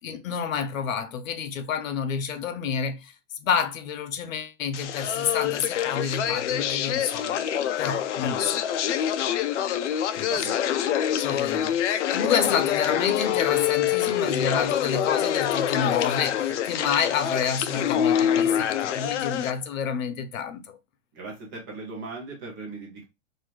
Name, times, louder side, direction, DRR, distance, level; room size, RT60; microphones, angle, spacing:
voice 1, 0.0-3.1 3.4-7.4 7.8-8.6 10.2-10.3 11.2-20.8, left 7 dB, 90° left, 0.8 m, -29 dB
sound 1, 4.7-19.5, left 10 dB, 65° left, 0.5 m, -26 dB
voice 2, 21.1-23.0, right 3 dB, 15° right, 0.5 m, -38 dB
4.2 x 2.4 x 3.0 m
supercardioid pair, 170°, 39 cm